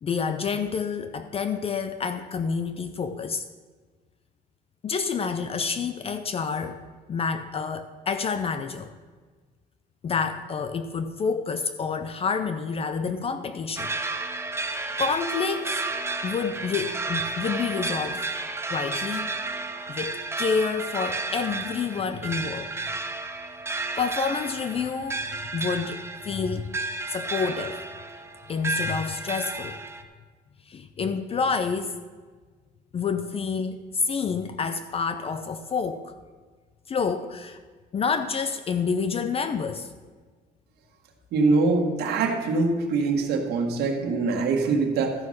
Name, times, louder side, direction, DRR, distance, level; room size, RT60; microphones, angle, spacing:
voice 1, 0.0-3.5 4.8-6.8 7.1-8.9 10.0-13.9 15.0-15.8 16.2-18.2 18.7-19.3 19.9-22.7 24.0-25.3 25.5-26.7 27.1-27.8 28.5-29.8 30.7-32.0 32.9-36.2 36.9-37.6 37.9-39.9, left 5 dB, 35° left, 10 dB, 0.5 m, -28 dB
sound 1, 13.8-30.0, right 3 dB, 15° right, 0.8 m, -32 dB
voice 2, 41.3-45.1, right 3 dB, 70° right, 1 dB, 1.5 m, -23 dB
13.0 x 5.5 x 6.4 m, 1.5 s
cardioid pair, 110°, 17 cm